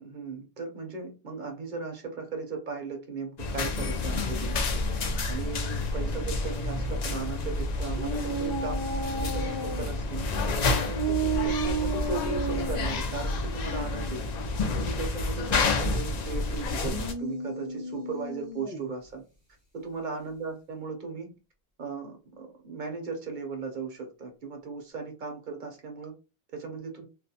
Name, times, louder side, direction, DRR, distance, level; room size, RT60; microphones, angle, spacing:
voice 1, 0.0-4.6 5.3-10.3 10.7-14.2 14.7-19.2 19.7-21.3 21.8-26.1 26.5-27.0, right 4 dB, 50° right, 4 dB, 0.6 m, -37 dB
sound 1, 3.4-17.1, left 3 dB, 65° left, 0.4 m, -29 dB
sound 2, 7.9-9.9 10.9-12.9 16.7-18.9, right 4 dB, 25° left, 0.8 m, -32 dB
2.4 x 2.1 x 2.7 m, 0.31 s
omnidirectional pair, 1.2 m